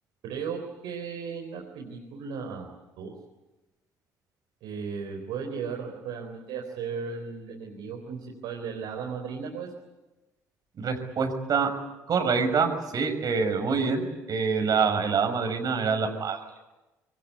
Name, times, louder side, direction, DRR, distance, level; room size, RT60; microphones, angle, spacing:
voice 1, 0.2-2.7 3.0-3.1 4.6-9.7, right 6 dB, 65° right, 1 dB, 4.1 m, -36 dB
voice 2, 10.8-11.7 12.1-16.4, right 5 dB, 50° right, 5 dB, 6.1 m, -26 dB
26.0 x 23.5 x 8.6 m, 1.1 s
hypercardioid pair, 55°, 8 cm